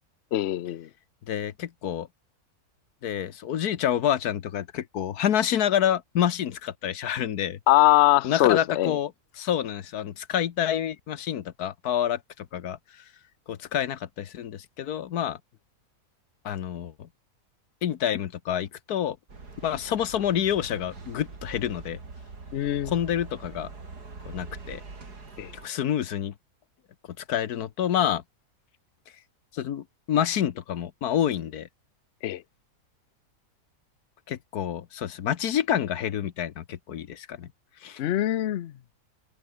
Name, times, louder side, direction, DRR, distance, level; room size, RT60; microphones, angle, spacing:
voice 1, 0.3-0.9 7.7-9.0 22.5-22.9 25.4-25.5 32.2-32.4 38.0-38.7, left 15 dB, 60° left, 0.8 m, -22 dB
voice 2, 1.3-2.1 3.0-7.6 8.2-9.1 9.4-12.8 13.5-15.4 16.4-17.1 17.8-19.2 19.6-22.0 22.8-23.7 24.3-24.8 25.6-26.3 27.3-28.2 29.5-31.7 34.3-37.5 37.8-38.0, left 10 dB, 75° left, 1.6 m, -28 dB
sound 1, 19.3-25.7, right 4 dB, 90° right, 4.0 m, -43 dB
omnidirectional pair, 1.6 m